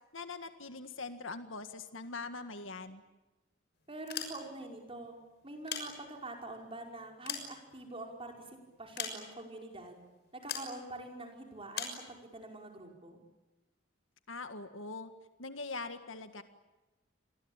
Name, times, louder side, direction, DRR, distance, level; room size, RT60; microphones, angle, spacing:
voice 1, 0.1-3.0 14.3-15.1 15.4-16.4, left 3 dB, 75° left, 8 dB, 1.8 m, -42 dB
sound 1, 3.9-4.8 5.4-6.4 6.9-8.2 9.0-9.6 10.5-10.8 11.7-12.0, left 7 dB, 55° left, 6.2 m, -40 dB
voice 2, 3.9-5.2 5.4-10.0 10.3-13.2, right 2 dB, 30° right, 2 dB, 5.4 m, -45 dB
29.0 x 22.5 x 8.9 m, 1.1 s
head